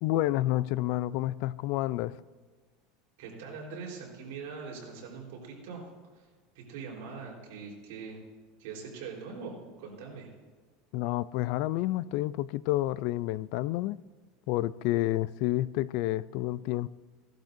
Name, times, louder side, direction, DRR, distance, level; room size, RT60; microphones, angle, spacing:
voice 1, 0.0-2.2 10.9-14.0 14.5-16.9, left 15 dB, 55° left, 18 dB, 0.3 m, -29 dB
voice 2, 3.2-5.8 6.1-6.2 6.5-8.2 8.6-10.3, right 5 dB, 80° right, -2 dB, 3.9 m, -42 dB
17.0 x 11.5 x 2.6 m, 1.4 s
supercardioid pair, 160°, 0 cm